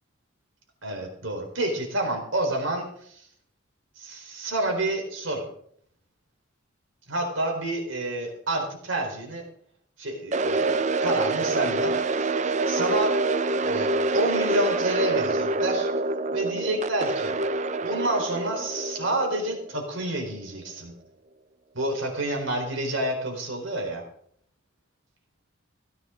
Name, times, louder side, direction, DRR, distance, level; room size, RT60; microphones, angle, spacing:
voice 1, 0.8-3.3 4.0-5.5 7.1-9.4 10.0-12.3 12.7-13.2 13.6-15.9 16.3-17.4 17.8-20.9 21.7-24.0, right 1 dB, 75° right, 1 dB, 4.3 m, -29 dB
sound 1, 10.3-20.4, right 2 dB, 35° right, 0.6 m, -26 dB
17.0 x 15.0 x 3.8 m, 0.63 s
head